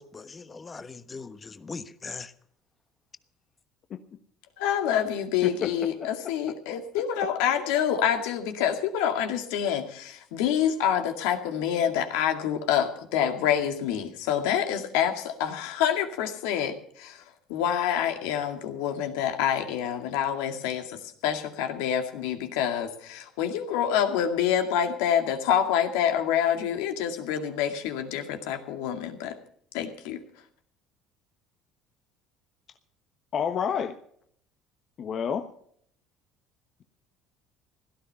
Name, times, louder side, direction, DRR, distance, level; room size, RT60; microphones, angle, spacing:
voice 1, 0.0-2.3, left 4 dB, 25° left, 1.2 m, -40 dB
voice 2, 4.6-17.2 17.5-29.3 29.7-30.2, left 9 dB, 80° left, 2.2 m, -27 dB
voice 3, 5.4-5.7 33.3-33.9 35.0-35.5, left 7 dB, 50° left, 1.1 m, -28 dB
17.0 x 12.5 x 5.6 m
supercardioid pair, 85°, 0 cm